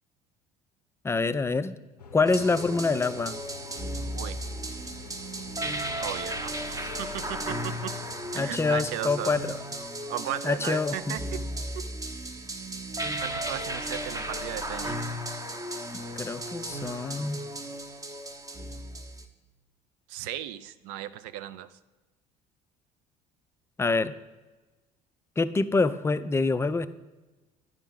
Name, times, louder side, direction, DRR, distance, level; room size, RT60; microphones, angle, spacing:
voice 1, 1.0-1.8 2.1-3.4 8.3-9.5 10.4-11.2 16.2-17.4 23.8-24.1 25.4-26.9, left 3 dB, 15° left, 12 dB, 0.4 m, -26 dB
sound 1, 2.0-9.5, left 5 dB, 85° left, 0.5 m, -47 dB
sound 2, 2.2-19.2, right 1 dB, 20° right, 0.8 m, -35 dB
voice 2, 6.0-7.9 8.3-9.4 10.1-11.4 13.2-15.1 20.1-21.7, right 12 dB, 60° right, 15 dB, 0.4 m, -36 dB
10.5 x 5.0 x 3.8 m, 1.2 s
figure-of-eight pair, 60°, 20 cm